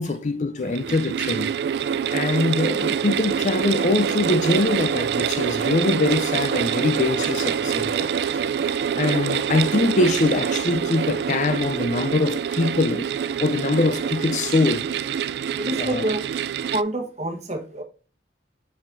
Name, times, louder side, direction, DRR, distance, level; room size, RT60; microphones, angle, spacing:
voice 1, 0.0-1.5 2.1-8.4 8.9-13.1 13.4-14.9 15.8-16.1, left 2 dB, 45° left, 0.5 m, -23 dB
sound 1, 0.6-16.8, right 8 dB, 65° right, 0.3 m, -25 dB
voice 2, 15.6-16.2 16.7-17.8, right 1 dB, 40° right, 1.2 m, -27 dB
7.2 x 5.6 x 2.6 m
head